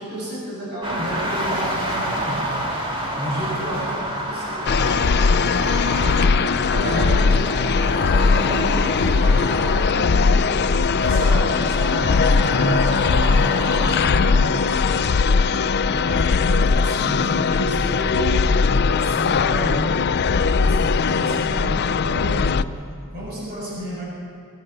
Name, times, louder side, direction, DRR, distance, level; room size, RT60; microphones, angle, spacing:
voice 1, 0.0-2.6 3.1-5.1 6.0-14.7 15.9-19.9 20.3-22.7 23.1-24.1, equal, 50° right, -5 dB, 6.3 m, -30 dB
sound 1, 0.8-16.2, right 1 dB, 25° right, 2.5 m, -29 dB
sound 2, 4.7-22.6, left 5 dB, 50° left, 0.5 m, -19 dB
22.5 x 18.0 x 6.7 m, 2.3 s
head